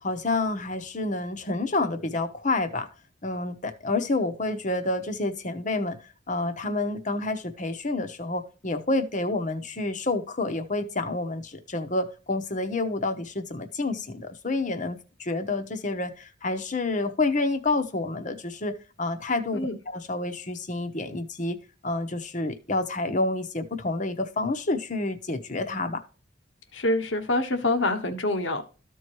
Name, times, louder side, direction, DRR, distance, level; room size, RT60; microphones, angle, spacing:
voice 1, 0.0-2.9 3.2-21.6 21.8-26.0, left 2 dB, 40° left, 8 dB, 1.1 m, -29 dB
voice 2, 26.7-28.6, left 2 dB, 75° left, 7 dB, 1.3 m, -26 dB
14.0 x 4.7 x 3.0 m, 0.34 s
head